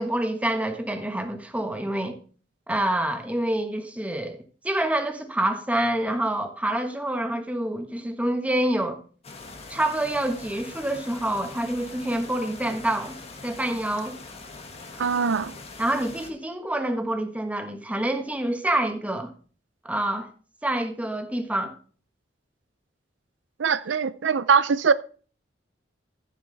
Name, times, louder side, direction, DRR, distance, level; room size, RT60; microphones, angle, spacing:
voice 1, 0.0-2.2 2.7-4.4 4.6-9.0 9.7-14.2 15.8-19.3 19.8-20.3 20.6-21.7, right 1 dB, 10° right, 1.4 m, -27 dB
sound 1, 9.2-16.3, left 3 dB, 35° left, 1.8 m, -42 dB
voice 2, 15.0-15.5 23.6-24.9, right 6 dB, 70° right, 0.5 m, -22 dB
14.5 x 7.3 x 3.4 m
head